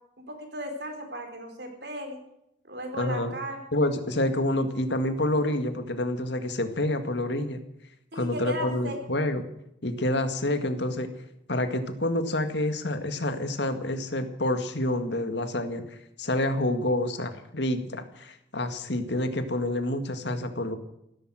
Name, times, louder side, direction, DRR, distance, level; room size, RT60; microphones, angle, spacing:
voice 1, 0.2-2.2 2.7-3.6 8.1-9.0, equal, 60° right, 4 dB, 4.5 m, -36 dB
voice 2, 3.0-3.3 3.7-7.6 8.1-9.4 9.8-11.1 11.5-15.8 16.2-20.8, left 1 dB, 70° left, 8 dB, 2.0 m, -28 dB
16.0 x 13.5 x 6.4 m, 0.79 s
head